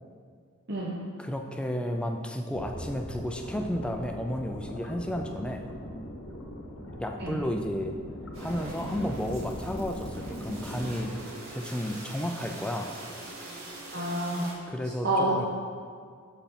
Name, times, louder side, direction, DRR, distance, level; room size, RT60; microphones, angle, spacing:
voice 1, 1.2-5.6 7.0-7.9 8.4-12.9 14.7-15.5, equal, 5° left, 4 dB, 0.4 m, -32 dB
sound 1, 2.5-10.9, equal, 75° left, 1.0 m, -40 dB
sound 2, 8.3-14.5, right 2 dB, 85° right, 1.7 m, -42 dB
voice 2, 13.9-14.5 15.0-15.5, right 1 dB, 50° right, -5 dB, 0.8 m, -28 dB
7.0 x 5.6 x 4.3 m, 2.1 s
head